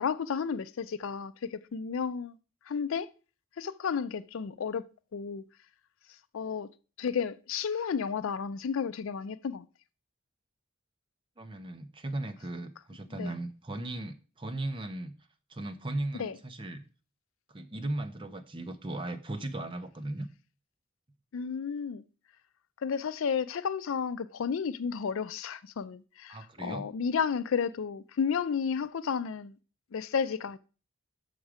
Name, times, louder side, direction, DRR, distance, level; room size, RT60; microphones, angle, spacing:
voice 1, 0.0-2.4 2.6-3.1 3.6-4.8 5.1-5.4 6.1-6.7 7.0-9.7 13.2-13.3 16.1-16.4 21.3-22.0 22.8-29.6 29.9-30.6, left 6 dB, 65° left, 0.4 m, -32 dB
voice 2, 11.4-15.1 15.5-16.8 17.5-20.3 26.3-26.9, right 1 dB, 25° right, 0.6 m, -37 dB
6.3 x 5.9 x 4.9 m
head